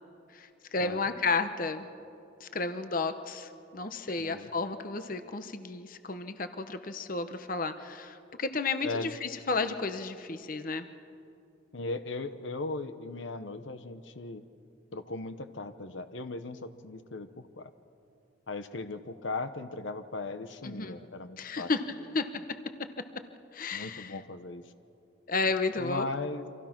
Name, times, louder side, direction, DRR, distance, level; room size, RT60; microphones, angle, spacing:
voice 1, 0.3-1.9 2.4-10.9 20.6-21.0 21.4-21.8 22.1-22.3 23.5-24.2 25.3-26.1, left 4 dB, 45° left, 9 dB, 1.0 m, -32 dB
voice 2, 4.2-4.5 8.8-9.2 11.7-14.4 14.9-17.7 18.5-21.7 23.7-24.6 25.8-26.5, left 3 dB, 75° left, 10 dB, 1.0 m, -38 dB
29.0 x 25.5 x 6.0 m, 2.6 s
head